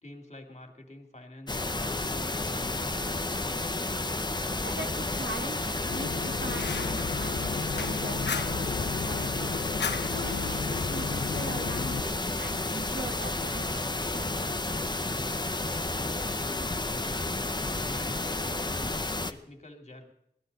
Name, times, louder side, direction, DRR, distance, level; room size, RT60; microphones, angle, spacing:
voice 1, 0.0-3.4 15.9-20.1, left 1 dB, 40° left, 4 dB, 2.1 m, -48 dB
Pink Noise, 1.5-19.3, left 2 dB, 25° left, 0.7 m, -31 dB
voice 2, 4.6-14.5, right 2 dB, 85° right, 4 dB, 1.5 m, -42 dB
Fire, 5.9-12.0, left 6 dB, 75° left, 0.4 m, -34 dB
18.0 x 12.0 x 4.0 m, 0.73 s
wide cardioid pair, 65°, 18 cm